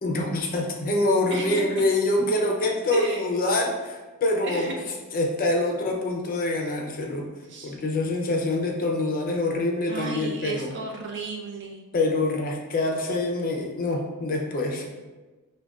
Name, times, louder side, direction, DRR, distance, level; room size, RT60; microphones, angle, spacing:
voice 1, 0.0-4.8 5.1-7.3 7.6-10.7 11.9-14.9, left 2 dB, 40° left, 1 dB, 0.5 m, -25 dB
voice 2, 1.3-1.8 2.9-3.3 4.4-4.8 7.5-7.8 9.9-11.8, right 4 dB, 55° right, -1 dB, 0.6 m, -33 dB
4.9 x 2.2 x 2.3 m, 1.2 s
head